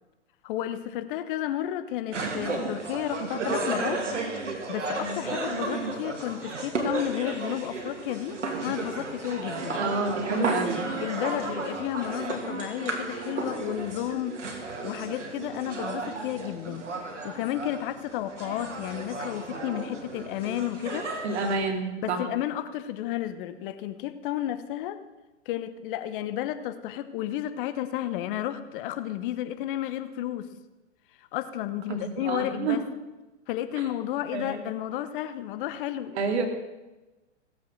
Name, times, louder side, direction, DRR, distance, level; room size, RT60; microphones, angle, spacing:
voice 1, 0.4-4.0 4.7-9.8 10.3-10.5 11.0-14.4 14.8-16.8 17.2-21.1 22.0-25.0 25.5-30.5 31.3-32.8 33.5-36.1, left 12 dB, 45° left, 11 dB, 1.1 m, -32 dB
sound 1, 2.1-21.5, right 3 dB, 85° right, 2.6 m, -33 dB
voice 2, 9.8-11.0 21.2-22.2 31.9-32.8 34.3-34.6 36.1-36.5, right 4 dB, 65° right, 4 dB, 2.6 m, -29 dB
17.0 x 8.1 x 6.4 m, 1.1 s
hypercardioid pair, 115°, 36 cm